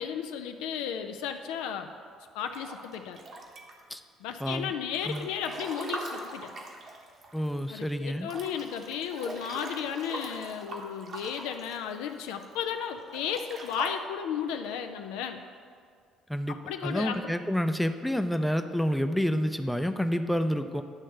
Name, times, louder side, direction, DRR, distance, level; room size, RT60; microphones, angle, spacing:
voice 1, 0.0-1.9 2.3-3.2 4.2-6.5 7.7-15.4 16.5-17.3, left 8 dB, 75° left, 6 dB, 0.4 m, -34 dB
Breathing / Bathtub (filling or washing) / Splash splatter, 2.4-4.0 4.4-7.6 7.9-8.0 8.3-12.4 13.0-13.9, right 2 dB, 50° right, 1.1 m, -41 dB
voice 2, 4.4-4.7 5.1-5.3 7.3-8.3 16.3-20.8, equal, 5° left, 8 dB, 0.5 m, -29 dB
9.6 x 3.2 x 6.4 m, 2.1 s
hypercardioid pair, 55°, 0 cm